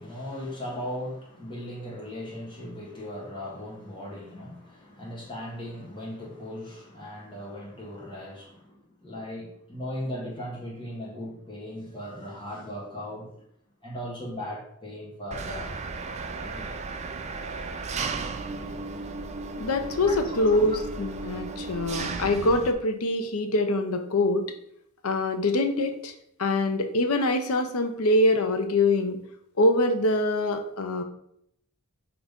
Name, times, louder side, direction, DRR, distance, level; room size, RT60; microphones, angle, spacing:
voice 1, 0.0-13.4 13.8-15.8 16.4-16.8 20.1-20.8, left 1 dB, 20° left, 1.8 m, -38 dB
Engine, 15.3-22.7, right 3 dB, 30° right, 0.4 m, -35 dB
voice 2, 19.6-24.4 25.0-26.1 26.4-29.2 29.6-31.0, left 2 dB, 80° left, 0.8 m, -24 dB
4.7 x 3.9 x 5.2 m
head